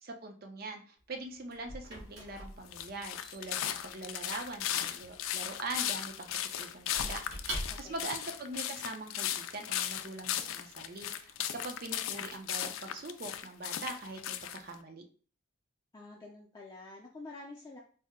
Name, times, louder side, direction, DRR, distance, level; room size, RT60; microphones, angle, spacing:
voice 1, 0.0-15.0, right 2 dB, 50° right, 5 dB, 0.6 m, -43 dB
Squeak / Wood, 1.0-8.1, right 1 dB, 90° right, 1.6 m, -45 dB
sound 1, 2.6-14.7, left 10 dB, 85° left, 0.4 m, -36 dB
voice 2, 7.7-8.1 15.9-17.8, left 2 dB, 20° left, -3 dB, 0.5 m, -48 dB
4.2 x 2.1 x 3.6 m, 0.42 s
head